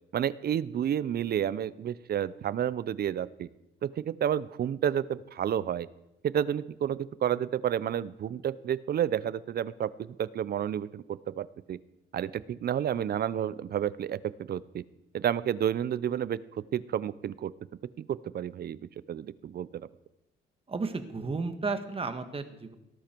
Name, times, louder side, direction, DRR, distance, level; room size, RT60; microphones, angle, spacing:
voice 1, 0.1-3.5 3.8-5.9 6.2-9.9 10.2-11.8 12.1-14.8 15.1-16.4 16.7-17.5 18.0-18.8 19.1-19.9, right 9 dB, 50° right, 18 dB, 0.6 m, -30 dB
voice 2, 20.7-22.8, right 4 dB, 30° right, 8 dB, 1.6 m, -33 dB
18.5 x 11.5 x 4.5 m, 0.92 s
cardioid pair, 90°, 20 cm